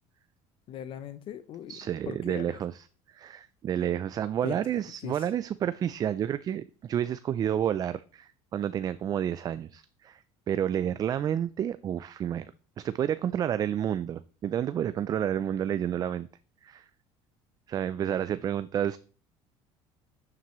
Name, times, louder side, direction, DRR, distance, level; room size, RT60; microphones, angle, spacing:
voice 1, 0.7-1.8 2.0-2.6 4.4-4.6 5.0-5.3, left 10 dB, 50° left, 0.6 m, -39 dB
voice 2, 1.7-2.7 3.1-12.5 12.8-16.3 16.6-16.9 17.7-19.0, right 10 dB, 35° right, 0.4 m, -30 dB
11.5 x 7.4 x 3.1 m
cardioid pair, 135°, 12 cm